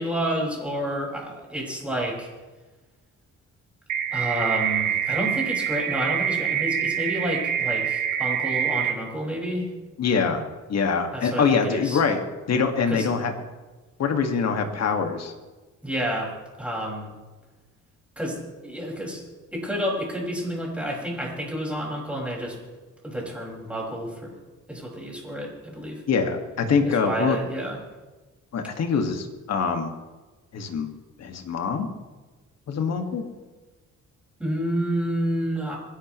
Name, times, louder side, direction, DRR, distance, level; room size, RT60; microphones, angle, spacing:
voice 1, 0.0-2.3 4.1-9.7 11.1-12.0 12.9-13.1 15.8-16.3 16.6-17.1 18.2-19.2 19.5-22.6 23.0-24.3 24.7-26.0 26.8-27.8 34.4-35.8, equal, 5° right, -3 dB, 5.8 m, -29 dB
sound 1, 3.9-8.9, right 8 dB, 90° right, 1.5 m, -25 dB
voice 2, 10.0-10.4 10.7-12.2 12.5-13.3 14.0-15.3 26.1-27.4 28.5-29.9 30.5-30.9 31.2-31.9 32.7-33.2, left 5 dB, 60° left, 4 dB, 2.1 m, -24 dB
26.5 x 11.5 x 3.2 m, 1.2 s
cardioid pair, 90°, 30 cm